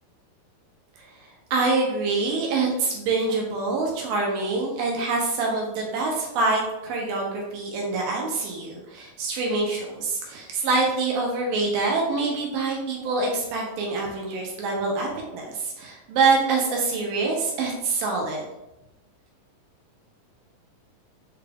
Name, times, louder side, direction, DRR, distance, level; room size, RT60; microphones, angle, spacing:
voice 1, 1.0-15.1 15.3-18.4, right 3 dB, 80° right, -1 dB, 2.4 m, -25 dB
5.9 x 2.3 x 3.3 m, 0.92 s
omnidirectional pair, 3.9 m